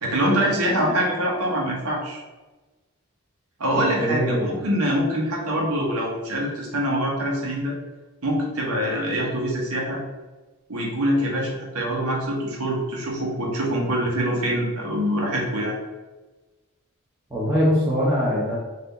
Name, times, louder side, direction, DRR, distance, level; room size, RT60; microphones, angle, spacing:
voice 1, 0.0-2.2 3.6-7.8 8.2-10.0 10.7-15.8, equal, 85° right, -1 dB, 1.1 m, -24 dB
voice 2, 3.7-4.5 17.3-18.6, equal, 10° right, -9 dB, 0.9 m, -22 dB
4.1 x 2.7 x 4.0 m, 1.2 s
head